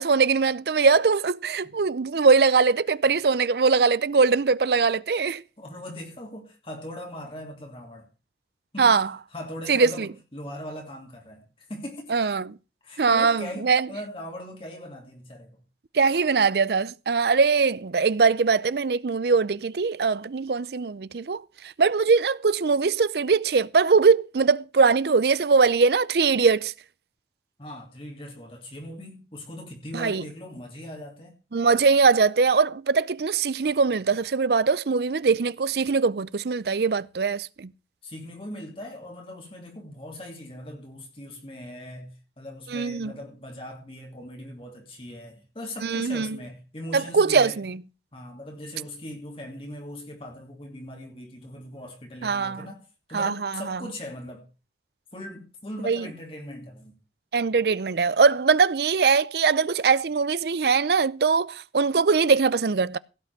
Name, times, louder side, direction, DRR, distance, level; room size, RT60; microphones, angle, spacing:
voice 1, 0.0-5.4 8.8-9.1 9.7-10.1 12.1-12.6 13.0-13.9 15.9-21.4 21.8-26.7 29.9-30.2 31.5-37.7 42.7-43.1 45.8-46.3 46.9-47.8 52.2-52.6 53.1-53.8 55.8-56.0 57.3-63.0, right 5 dB, 65° right, 0.5 m, -21 dB
voice 2, 5.6-8.1 8.7-8.9 9.3-12.1 12.8-15.6 27.6-31.4 38.0-47.6 48.1-54.5 55.1-56.9, left 1 dB, 30° left, 2.7 m, -40 dB
16.5 x 6.0 x 6.6 m
head